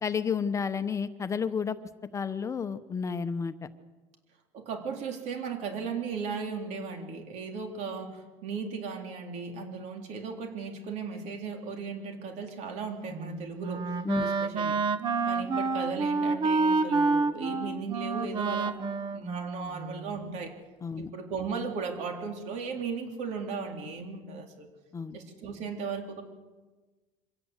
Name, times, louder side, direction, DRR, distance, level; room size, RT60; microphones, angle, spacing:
voice 1, 0.0-1.8 2.1-3.5 14.0-14.3 20.8-21.1 24.9-25.2, left 6 dB, 25° left, 10 dB, 0.8 m, -31 dB
voice 2, 4.5-13.9 14.2-14.8 15.3-20.5 21.0-24.7 25.1-26.2, right 5 dB, 70° right, 3 dB, 3.7 m, -36 dB
Wind instrument woodwind instrument, 13.1-20.2, right 4 dB, 40° right, 1.0 m, -29 dB
25.0 x 17.0 x 8.1 m, 1.3 s
cardioid pair, 155°, 12 cm